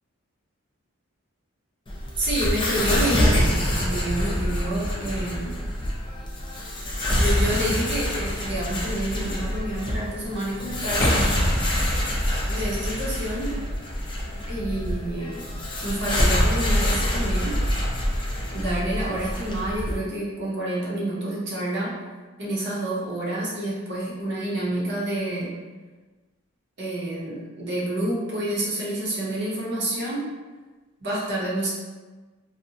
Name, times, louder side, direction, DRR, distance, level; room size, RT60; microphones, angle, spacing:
sound 1, 1.9-20.0, equal, 25° left, 0.3 m, -25 dB
voice 1, 2.2-5.6 7.2-11.4 12.5-13.6 14.5-15.5 15.8-17.6 18.5-21.9 22.4-25.6 26.8-30.3 31.0-31.7, right 1 dB, 55° right, -6 dB, 0.7 m, -28 dB
2.6 x 2.0 x 2.7 m, 1.3 s
head